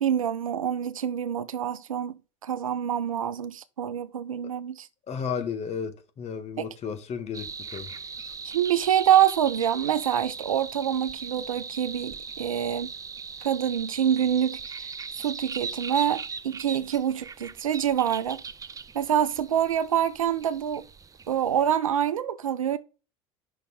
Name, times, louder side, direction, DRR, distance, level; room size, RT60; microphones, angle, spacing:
voice 1, 0.0-4.9 6.6-6.7 8.5-12.9 13.4-14.9 15.2-18.4 18.9-20.8 21.3-22.8, right 9 dB, 80° right, 0.5 m, -26 dB
voice 2, 5.1-7.9, left 6 dB, 40° left, 1.4 m, -33 dB
sound 1, 7.3-21.8, right 5 dB, 20° right, 0.5 m, -39 dB
5.8 x 4.2 x 5.2 m
figure-of-eight pair, 65°, 17 cm